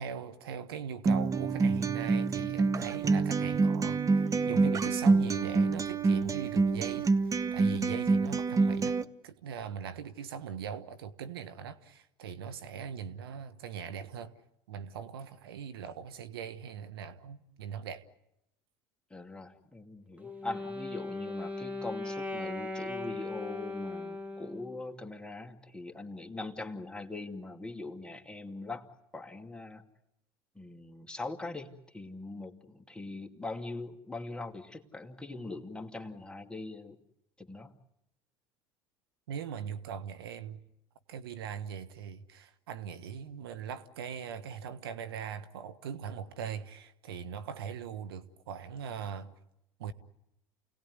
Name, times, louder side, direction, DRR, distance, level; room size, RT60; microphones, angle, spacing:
voice 1, 0.0-9.0 9.2-14.3 14.7-18.0 39.3-40.6 41.1-49.3 49.8-49.9, right 7 dB, 90° right, 1.4 m, -40 dB
Acoustic guitar, 1.1-9.0, right 4 dB, 25° right, 1.1 m, -27 dB
voice 2, 19.1-28.9 29.1-29.8 30.6-37.0 37.4-37.7, left 2 dB, 5° left, 2.5 m, -42 dB
Wind instrument woodwind instrument, 20.2-24.7, left 2 dB, 10° right, 2.6 m, -38 dB
29.0 x 18.5 x 9.7 m
hypercardioid pair, 90°, 12 cm